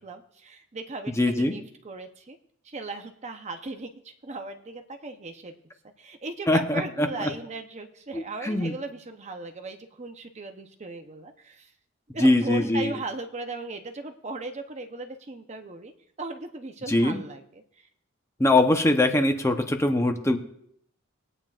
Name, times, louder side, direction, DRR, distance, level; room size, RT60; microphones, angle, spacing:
voice 1, 0.0-2.4 2.6-5.5 6.0-11.7 12.1-15.9 16.2-17.6, right 3 dB, 35° right, 6 dB, 0.8 m, -37 dB
voice 2, 1.1-1.6 6.5-7.3 8.1-8.7 12.2-12.9 16.9-17.2 18.4-20.4, left 2 dB, 15° left, 5 dB, 0.8 m, -22 dB
20.0 x 9.0 x 2.5 m, 0.68 s
head